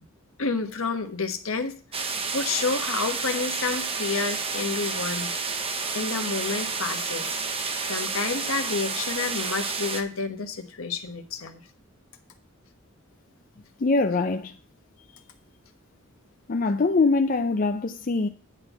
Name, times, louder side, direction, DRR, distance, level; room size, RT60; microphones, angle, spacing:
voice 1, 0.4-5.3 5.9-7.3 7.8-11.6, left 4 dB, 75° left, 1.2 m, -30 dB
sound 1, 1.9-10.0, right 4 dB, 25° right, 0.8 m, -30 dB
voice 2, 13.8-14.6 16.5-18.3, left 3 dB, 40° left, 0.4 m, -23 dB
9.7 x 4.6 x 6.7 m
head